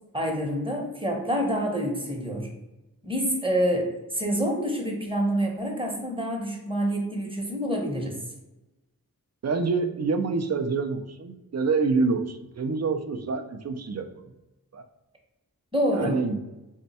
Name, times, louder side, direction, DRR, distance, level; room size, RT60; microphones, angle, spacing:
voice 1, 0.1-2.5 3.0-8.2 15.7-16.2, equal, 15° right, 1 dB, 0.8 m, -27 dB
voice 2, 9.4-14.3 14.7-14.8 15.9-16.4, right 4 dB, 50° right, 7 dB, 0.4 m, -27 dB
3.4 x 2.1 x 4.0 m, 1.0 s
wide cardioid pair, 50°, 35 cm